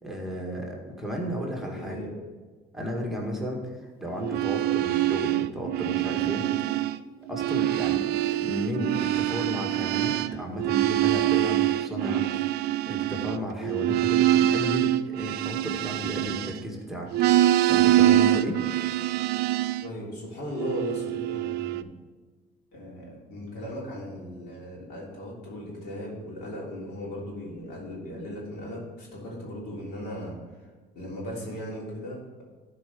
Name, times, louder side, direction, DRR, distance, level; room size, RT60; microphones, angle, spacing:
voice 1, 0.0-2.1 2.7-6.4 7.3-12.4 12.9-17.1 17.4-18.6, equal, ahead, -1 dB, 1.7 m, -33 dB
voice 2, 1.7-2.1 19.8-21.9 22.7-30.3 30.9-32.4, equal, 80° left, -3 dB, 3.2 m, -37 dB
sound 1, 4.2-7.0 7.3-16.8 17.1-19.9 20.5-21.8, right 14 dB, 75° right, 0.4 m, -25 dB
12.0 x 4.8 x 5.3 m, 1.4 s
cardioid pair, 110°, 17 cm